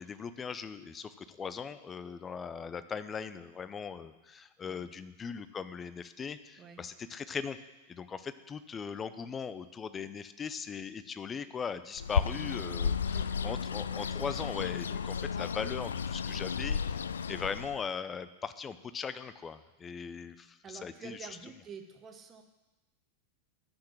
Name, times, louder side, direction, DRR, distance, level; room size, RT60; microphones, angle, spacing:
voice 1, 0.0-7.6 7.9-21.2, left 6 dB, 20° left, 13 dB, 0.6 m, -39 dB
Bird, 12.0-17.9, left 6 dB, 70° left, 0.4 m, -33 dB
voice 2, 12.9-13.6 20.6-22.4, right 6 dB, 25° right, 6 dB, 1.3 m, -49 dB
11.5 x 6.7 x 7.2 m, 1.1 s
figure-of-eight pair, 90°, 0 cm